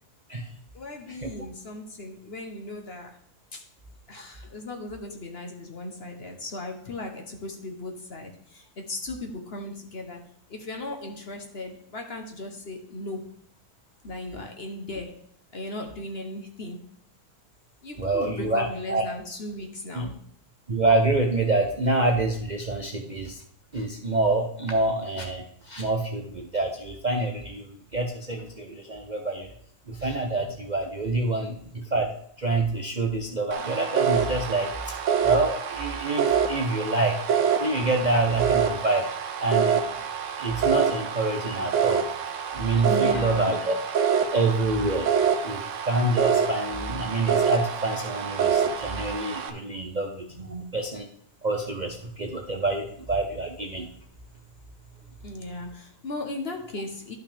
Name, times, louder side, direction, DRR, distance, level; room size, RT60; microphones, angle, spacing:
voice 1, 0.7-3.2 3.5-3.7 4.1-13.3 14.0-16.9 17.8-20.2 30.3-30.5 42.8-43.6 50.4-50.5 55.2-57.1, left 2 dB, 45° left, 3 dB, 1.1 m, -37 dB
voice 2, 18.0-19.1 19.9-20.1 20.7-23.4 23.7-29.5 29.9-32.1 32.4-34.7 35.2-37.2 37.6-39.1 39.4-39.8 40.4-42.0 42.5-43.8 44.3-45.1 45.4-45.6 45.9-51.1 51.4-53.9, right 2 dB, 40° right, 2 dB, 0.7 m, -26 dB
sound 1, 33.5-49.5, right 7 dB, 55° right, 1.0 m, -26 dB
11.5 x 5.7 x 3.4 m, 0.64 s
omnidirectional pair, 1.7 m